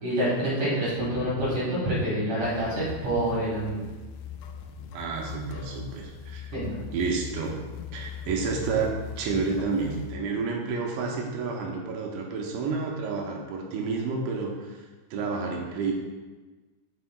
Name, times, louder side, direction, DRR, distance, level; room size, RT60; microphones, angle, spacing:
voice 1, 0.0-3.8 6.5-6.7, right 1 dB, 55° right, -8 dB, 2.6 m, -27 dB
sound 1, 2.4-10.2, left 7 dB, 85° left, 3.2 m, -40 dB
voice 2, 4.9-6.5 6.9-7.6 7.9-14.8 15.1-15.9, right 4 dB, 80° right, -1 dB, 2.9 m, -30 dB
8.1 x 8.1 x 2.2 m, 1.3 s
omnidirectional pair, 5.8 m